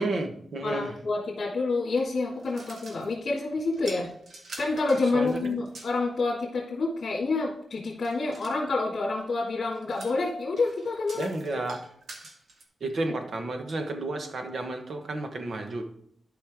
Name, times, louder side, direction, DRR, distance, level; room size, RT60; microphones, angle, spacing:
voice 1, 0.0-0.9 5.1-5.6 11.1-11.8 12.8-15.8, right 2 dB, 50° right, 5 dB, 1.2 m, -31 dB
voice 2, 0.6-4.1 4.6-11.3 11.6-11.7, left 3 dB, 60° left, -5 dB, 2.0 m, -28 dB
sound 1, 2.0-3.3 3.7-6.0 8.0-8.6 9.7-12.6, right 2 dB, 70° right, 1.8 m, -46 dB
12.0 x 5.5 x 3.6 m, 0.68 s
wide cardioid pair, 160°, 0 cm